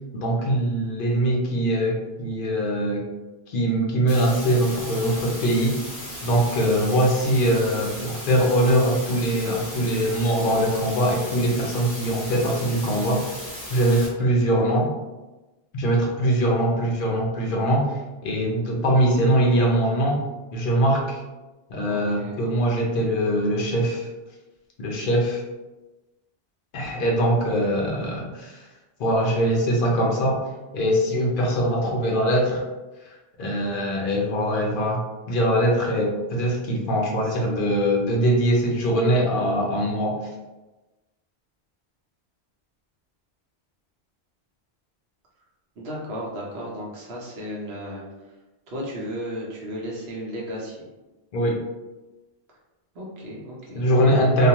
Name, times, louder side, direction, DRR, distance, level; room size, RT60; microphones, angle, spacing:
voice 1, 0.1-3.0 3.5-5.8 6.2-13.2 13.7-14.9 15.7-20.2 20.5-21.2 21.7-24.1 24.8-25.4 26.7-28.6 29.0-30.4 30.7-32.6 33.4-40.3 51.3-51.6 53.7-54.5, right 1 dB, 60° left, -2 dB, 0.7 m, -22 dB
sound 1, 4.1-14.1, left 1 dB, 20° left, 0.7 m, -37 dB
voice 2, 21.8-22.4 45.8-48.0 48.7-50.8 52.9-54.5, equal, 65° right, -4 dB, 1.0 m, -34 dB
2.4 x 2.2 x 2.8 m, 1.1 s
omnidirectional pair, 1.1 m